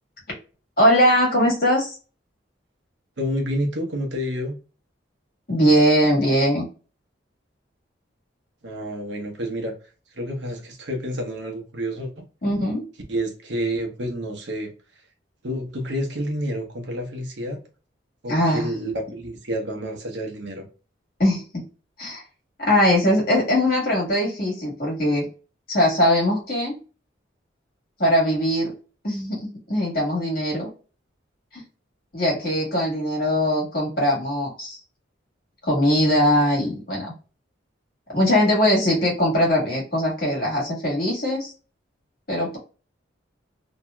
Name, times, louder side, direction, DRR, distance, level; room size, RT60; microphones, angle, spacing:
voice 1, 0.8-2.0 5.5-6.6 12.4-12.8 18.3-18.7 21.2-21.5 22.0-22.2 22.6-25.3 25.7-26.8 28.0-28.7 29.0-30.7 31.5-31.6 32.1-34.8 35.6-37.1 38.1-41.5 42.3-42.6, equal, 50° left, 1.6 m, -21 dB
voice 2, 3.2-4.5 8.6-9.7 10.1-12.2 13.1-14.7 15.4-17.6 18.2-20.7, equal, 70° right, 0.9 m, -29 dB
2.9 x 2.8 x 2.2 m
head